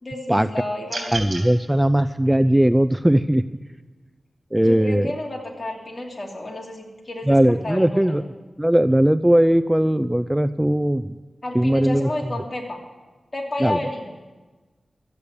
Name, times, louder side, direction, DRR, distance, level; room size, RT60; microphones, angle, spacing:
voice 1, 0.0-1.2 4.6-8.2 11.4-12.8 13.3-14.1, left 1 dB, 40° left, 0 dB, 2.9 m, -31 dB
sound 1, 0.9-1.5, right 2 dB, 50° right, 3.5 m, -30 dB
voice 2, 1.1-3.4 4.5-5.1 7.3-8.2 8.6-11.1 11.5-12.1 13.6-13.8, right 1 dB, 10° right, 13 dB, 0.4 m, -18 dB
13.0 x 8.6 x 8.3 m, 1.3 s
cardioid pair, 60°, 0 cm